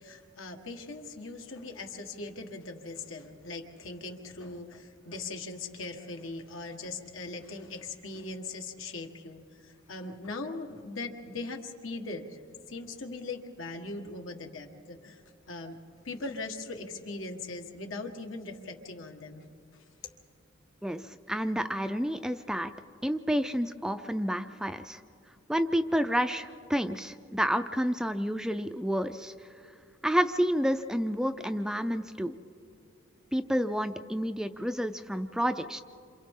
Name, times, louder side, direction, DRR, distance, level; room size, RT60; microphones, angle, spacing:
voice 1, 0.0-12.4 12.7-15.2 15.5-15.8 16.0-19.5, left 3 dB, 80° left, 3 dB, 1.7 m, -40 dB
voice 2, 20.8-22.7 23.0-25.0 25.5-29.3 30.0-32.3 33.3-35.8, equal, 5° right, 9 dB, 0.4 m, -29 dB
28.5 x 27.0 x 3.7 m, 2.5 s
head